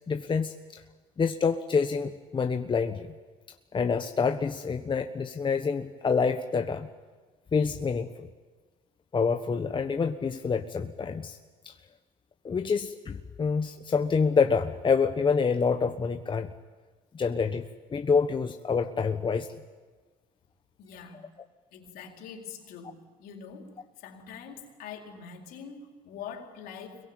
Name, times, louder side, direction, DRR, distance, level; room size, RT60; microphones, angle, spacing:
voice 1, 0.1-0.8 1.2-3.1 3.7-6.9 7.5-8.3 9.1-11.4 11.6-11.7 12.4-16.5 17.1-17.6 17.9-19.5, left 5 dB, 30° left, 6 dB, 1.3 m, -27 dB
voice 2, 20.8-21.3 21.7-27.1, left 6 dB, 65° left, 2 dB, 4.6 m, -44 dB
26.0 x 22.5 x 9.0 m, 1.4 s
supercardioid pair, 75°, 16 cm